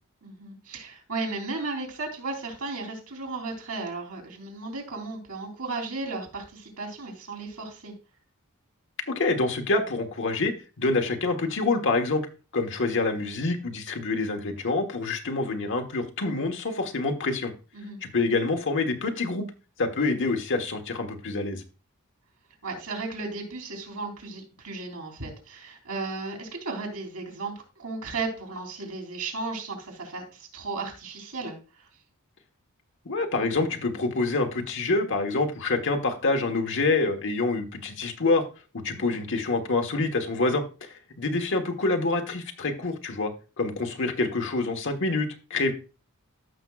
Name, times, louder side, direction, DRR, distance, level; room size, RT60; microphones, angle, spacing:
voice 1, 0.2-7.9 17.7-18.0 22.6-31.5 38.9-39.2, right 3 dB, 80° right, 1 dB, 3.2 m, -35 dB
voice 2, 9.1-12.3 12.5-17.5 18.0-19.4 19.8-21.6 33.0-38.4 38.7-43.3 43.6-45.7, left 3 dB, 60° left, 4 dB, 1.3 m, -26 dB
14.5 x 5.9 x 2.4 m, 0.33 s
head